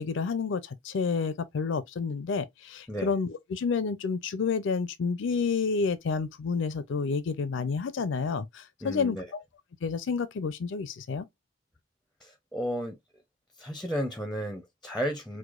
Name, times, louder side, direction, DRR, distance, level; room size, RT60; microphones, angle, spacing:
voice 1, 0.0-9.2 9.8-11.3, left 5 dB, 70° left, 0.4 m, -29 dB
voice 2, 8.8-9.3 12.2-13.0 13.6-15.4, equal, ahead, 0.5 m, -33 dB
4.7 x 2.1 x 2.4 m
head